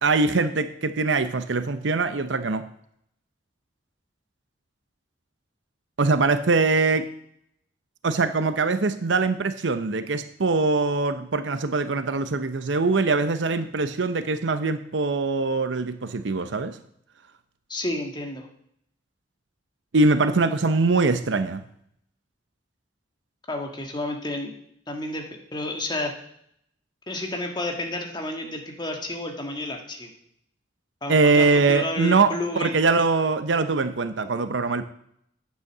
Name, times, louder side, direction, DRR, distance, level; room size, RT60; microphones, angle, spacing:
voice 1, 0.0-2.7 6.0-7.1 8.0-16.8 19.9-21.6 31.1-32.3 32.6-34.8, right 3 dB, 80° right, 11 dB, 0.7 m, -22 dB
voice 2, 17.7-18.5 23.5-24.5 24.9-25.2 25.5-26.1 27.1-30.1 31.0-32.8, left 1 dB, 25° left, 2 dB, 1.8 m, -30 dB
9.5 x 8.1 x 7.2 m, 0.70 s
head